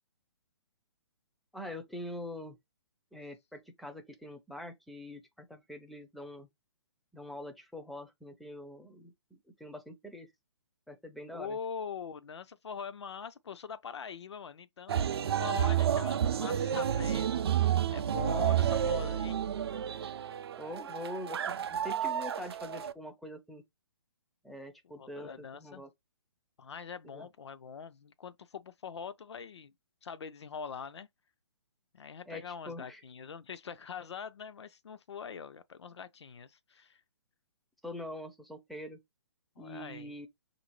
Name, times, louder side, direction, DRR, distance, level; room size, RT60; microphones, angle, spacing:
voice 1, 1.5-2.6 3.1-6.5 7.1-10.3 10.9-11.6 20.6-23.6 24.4-25.9 27.0-27.3 32.3-33.0 37.8-39.0 39.6-40.3, left 1 dB, ahead, 0.4 m, -44 dB
voice 2, 11.3-15.1 15.4-17.4 17.9-19.4 21.8-21.9 25.0-25.8 26.6-29.7 30.0-31.1 31.9-37.0 39.6-40.3, left 6 dB, 75° left, 0.5 m, -43 dB
sound 1, 14.9-22.9, right 9 dB, 60° right, 0.4 m, -30 dB
5.0 x 2.6 x 3.0 m
hypercardioid pair, 140°, 14 cm